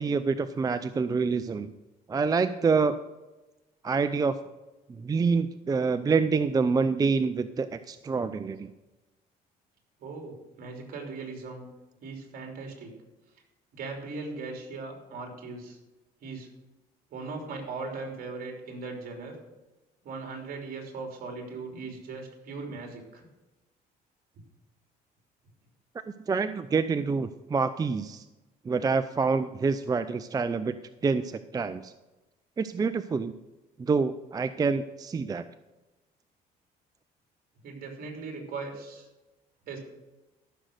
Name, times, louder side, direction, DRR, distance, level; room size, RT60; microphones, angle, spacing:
voice 1, 0.0-1.7 2.1-3.0 3.8-4.4 5.0-8.7 26.3-28.2 28.7-30.7 31.0-31.9 32.6-33.3 33.8-35.4, right 4 dB, 20° right, 11 dB, 0.5 m, -27 dB
voice 2, 10.0-11.6 12.0-12.9 13.7-15.8 16.2-16.5 17.1-19.4 20.0-23.2 37.6-39.1 39.7-39.8, right 3 dB, 60° right, 2 dB, 3.3 m, -39 dB
14.5 x 6.5 x 6.4 m, 1.1 s
cardioid pair, 110°, 17 cm